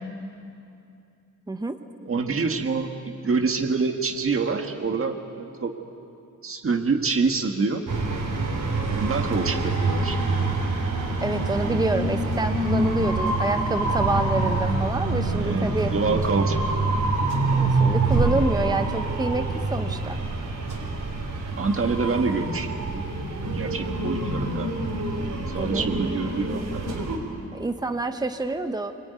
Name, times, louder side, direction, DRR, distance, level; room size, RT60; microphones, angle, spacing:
voice 1, 1.5-1.8 11.2-15.9 17.5-20.2 25.6-25.9 27.5-28.9, right 2 dB, 15° right, 7 dB, 1.0 m, -27 dB
voice 2, 2.0-5.7 6.4-7.8 8.9-10.2 15.4-16.6 21.6-24.7 25.5-27.0, right 4 dB, 45° right, 4 dB, 1.7 m, -26 dB
sound 1, 7.9-27.2, right 2 dB, 85° right, 3.8 m, -26 dB
25.0 x 22.0 x 9.5 m, 2.6 s
wide cardioid pair, 180°, 31 cm